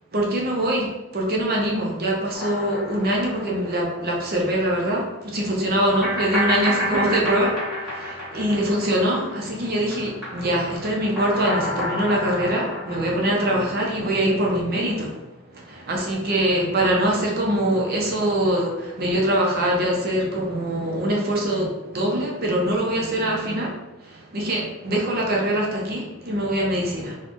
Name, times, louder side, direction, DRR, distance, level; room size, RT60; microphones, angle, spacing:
voice 1, 0.1-15.2 15.5-27.2, right 1 dB, 45° right, -2 dB, 0.6 m, -23 dB
sound 1, 2.3-4.0 4.3-4.4 6.0-9.5 9.8-14.0, equal, ahead, 1.5 m, -29 dB
4.2 x 2.3 x 3.0 m, 1.0 s
head